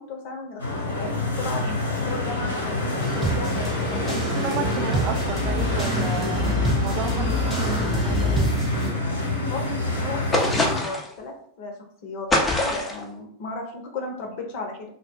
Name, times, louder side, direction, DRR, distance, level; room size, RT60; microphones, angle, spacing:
voice 1, 0.0-4.2 9.5-11.7 12.0-12.3 12.6-14.9, left 3 dB, 45° left, 1 dB, 0.8 m, -35 dB
sound 1, 0.6-10.8, left 2 dB, 75° left, 0.9 m, -27 dB
sound 2, 3.0-8.9, equal, 10° right, 1.1 m, -27 dB
voice 2, 4.2-8.5, right 6 dB, 35° right, 5 dB, 0.3 m, -33 dB
sound 3, 10.3-11.1 12.3-13.0, left 1 dB, 15° left, 0.6 m, -23 dB
2.2 x 2.1 x 3.4 m, 0.63 s
figure-of-eight pair, 90°, 0 cm